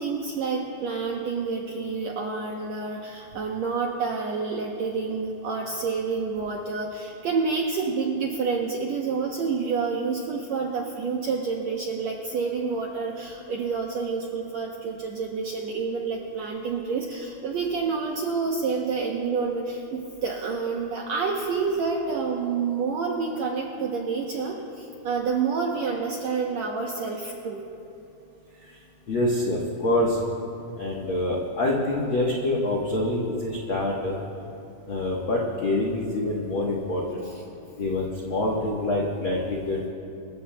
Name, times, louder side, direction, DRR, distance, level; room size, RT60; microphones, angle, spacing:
voice 1, 0.0-27.6 37.2-37.4, right 5 dB, 75° right, 0 dB, 1.6 m, -28 dB
voice 2, 29.1-30.2 30.7-34.2 34.9-37.2 37.8-39.9, left 1 dB, 75° left, -3 dB, 1.1 m, -26 dB
26.0 x 14.5 x 2.2 m, 2.7 s
omnidirectional pair, 4.2 m